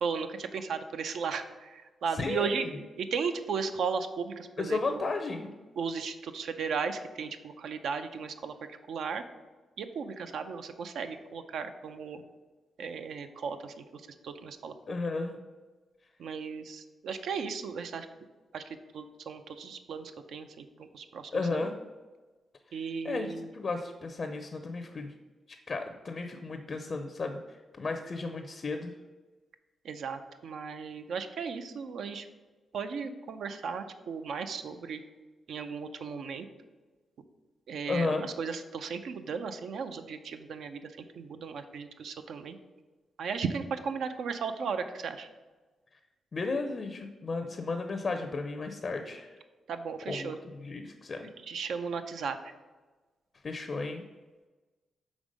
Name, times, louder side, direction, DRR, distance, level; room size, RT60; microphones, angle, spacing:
voice 1, 0.0-2.7 3.0-5.0 5.8-9.2 9.8-12.2 12.8-14.7 16.2-18.1 18.5-21.7 22.7-23.5 29.8-32.3 32.7-35.0 35.5-36.5 37.7-42.6 43.2-45.3 49.7-50.4 51.2-52.5, right 5 dB, 80° right, 9 dB, 0.5 m, -36 dB
voice 2, 2.1-2.7 4.6-5.5 14.9-15.4 21.3-21.8 22.7-22.8 23.0-25.1 25.5-28.9 37.9-38.3 46.3-49.3 50.1-51.3 53.4-54.0, left 3 dB, 45° left, 6 dB, 0.5 m, -34 dB
5.2 x 3.6 x 5.1 m, 1.2 s
cardioid pair, 95°, 0 cm